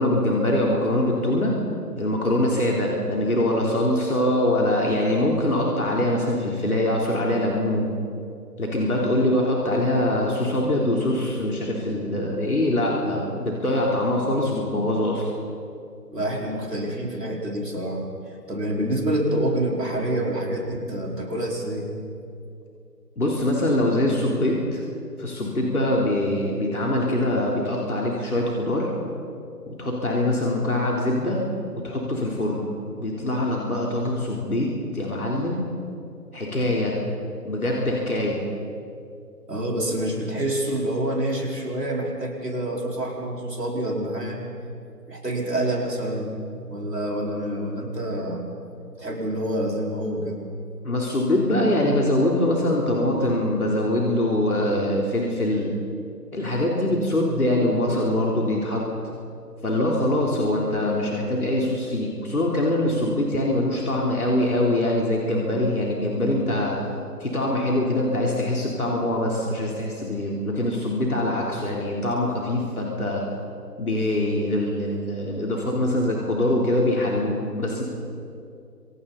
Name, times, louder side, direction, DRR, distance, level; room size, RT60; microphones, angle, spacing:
voice 1, 0.0-1.5 2.0-7.8 8.6-15.3 23.2-24.8 25.2-28.9 29.7-31.4 31.7-32.7 33.0-35.6 36.3-37.0 37.4-38.4 50.8-55.7 56.3-58.8 59.6-66.8 67.2-73.2 73.8-77.8, left 1 dB, 60° left, -3 dB, 3.9 m, -23 dB
voice 2, 16.1-21.9 39.5-44.4 45.1-46.3 46.7-48.4 49.0-50.4, right 1 dB, 75° right, -2 dB, 5.1 m, -27 dB
29.5 x 26.5 x 4.2 m, 2.5 s
figure-of-eight pair, 165°, 48 cm